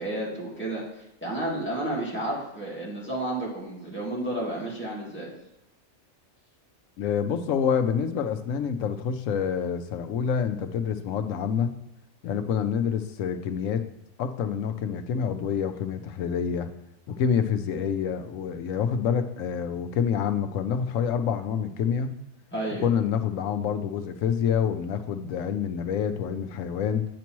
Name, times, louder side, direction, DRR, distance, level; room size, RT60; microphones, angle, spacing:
voice 1, 0.0-5.3 22.5-22.9, right 1 dB, 10° left, -6 dB, 1.9 m, -31 dB
voice 2, 7.0-11.7 12.2-13.9 14.2-16.7 17.1-22.1 22.8-27.1, left 7 dB, 80° left, 8 dB, 1.0 m, -27 dB
8.2 x 5.2 x 3.0 m, 0.88 s
omnidirectional pair, 1.4 m